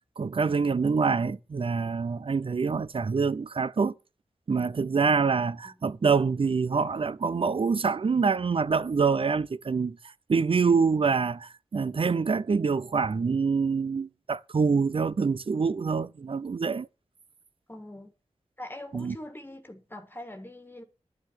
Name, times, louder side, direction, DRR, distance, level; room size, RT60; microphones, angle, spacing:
voice 1, 0.2-3.9 4.5-10.0 10.3-16.9 18.9-19.1, right 5 dB, 50° right, 0.6 m, -26 dB
voice 2, 17.7-18.1 18.6-20.8, left 1 dB, 15° left, 1.7 m, -43 dB
11.5 x 6.0 x 9.1 m
wide cardioid pair, 105°, 12 cm